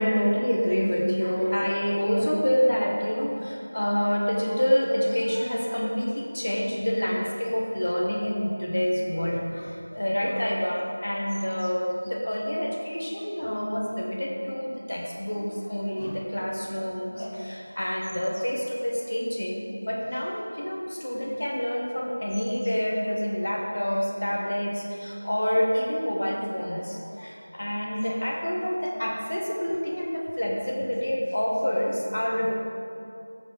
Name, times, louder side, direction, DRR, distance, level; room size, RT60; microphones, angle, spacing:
voice 1, 0.0-32.5, equal, 40° left, -1 dB, 0.7 m, -27 dB
7.5 x 4.8 x 5.3 m, 2.6 s
figure-of-eight pair, 180°, 0 cm